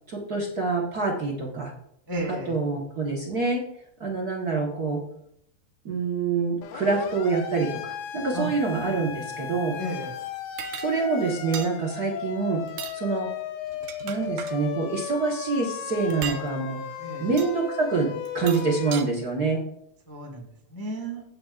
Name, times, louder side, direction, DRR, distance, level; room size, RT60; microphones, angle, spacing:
voice 1, 0.1-1.7 2.3-3.6 4.0-5.0 5.8-7.8 8.1-9.8 10.8-12.6 12.9-13.3 14.0-16.8 17.2-19.6, right 4 dB, 50° right, -1 dB, 1.2 m, -26 dB
voice 2, 2.1-2.6 8.3-8.5 8.9-9.0 9.8-10.1 17.0-17.3 20.1-21.2, right 1 dB, 35° left, -1 dB, 0.3 m, -33 dB
Siren, 6.6-19.0, left 9 dB, 75° left, 1.7 m, -36 dB
sound 1, 10.6-10.9 11.5-11.7 12.7-13.0 13.7-14.6 16.1-16.4 17.4-17.5 18.3-19.1, right 10 dB, 85° right, 2.2 m, -36 dB
16.0 x 7.8 x 2.5 m, 0.73 s
omnidirectional pair, 3.6 m